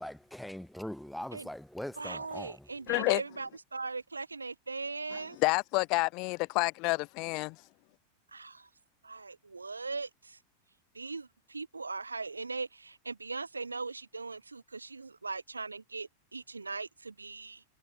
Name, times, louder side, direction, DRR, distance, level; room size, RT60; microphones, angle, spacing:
voice 1, 0.0-2.6, left 1 dB, ahead, 0.8 m, -41 dB
voice 2, 2.0-5.4 8.3-8.7 9.1-10.4 10.9-17.6, right 4 dB, 80° right, 0.6 m, -39 dB
voice 3, 2.9-3.2 5.1-7.6, left 27 dB, 40° left, 1.1 m, -29 dB
figure-of-eight pair, 90°, 0 cm